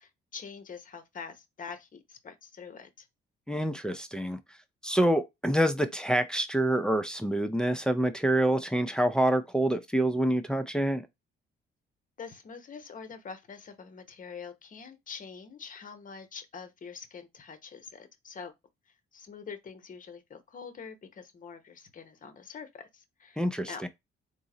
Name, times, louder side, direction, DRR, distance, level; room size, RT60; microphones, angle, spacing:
voice 1, 0.0-3.1 12.2-18.5 19.1-23.8, left 6 dB, 40° left, 0.8 m, -45 dB
voice 2, 3.5-4.4 4.8-11.1 23.4-23.9, right 1 dB, 5° left, 0.5 m, -27 dB
3.8 x 2.0 x 3.8 m
cardioid pair, 90°, 20 cm